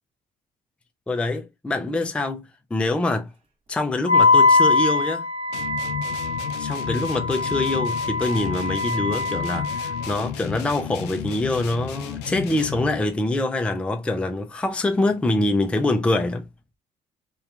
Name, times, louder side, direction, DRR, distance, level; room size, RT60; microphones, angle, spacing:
voice 1, 1.1-3.3 3.7-5.3 6.6-16.5, left 2 dB, 5° left, 0.3 m, -25 dB
Wind instrument woodwind instrument, 4.0-10.2, left 3 dB, 35° right, 0.9 m, -22 dB
sound 1, 5.5-13.0, left 9 dB, 90° left, 0.5 m, -33 dB
2.7 x 2.3 x 2.3 m
cardioid pair, 110°, 17 cm